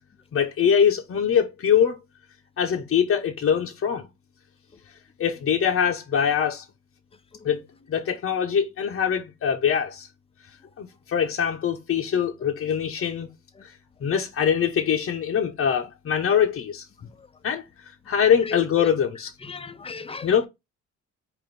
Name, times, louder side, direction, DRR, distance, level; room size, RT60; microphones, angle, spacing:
voice 1, 0.3-2.0 2.6-4.1 5.2-6.6 7.4-7.6 7.9-10.1 10.8-13.3 13.6-13.7 14.0-16.8 17.4-17.6 18.1-19.3 20.2-20.5, left 8 dB, 45° left, 0.7 m, -23 dB
voice 2, 18.4-18.9 19.4-20.5, left 4 dB, 20° left, 0.5 m, -37 dB
5.0 x 2.5 x 3.9 m
cardioid pair, 90°, 30 cm